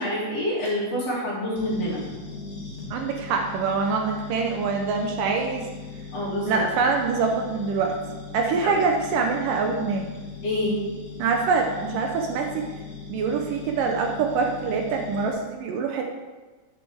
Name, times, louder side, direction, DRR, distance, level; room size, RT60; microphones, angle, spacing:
voice 1, 0.0-2.0 6.1-6.6 8.6-8.7 10.4-10.8, left 1 dB, 45° left, -7 dB, 3.7 m, -27 dB
sound 1, 1.5-15.3, left 4 dB, 20° left, 2.2 m, -39 dB
voice 2, 2.9-5.7 6.5-8.0 8.3-10.0 11.2-12.6 13.1-16.0, right 4 dB, 75° right, 2 dB, 2.3 m, -25 dB
11.0 x 8.7 x 3.5 m, 1.2 s
omnidirectional pair, 4.1 m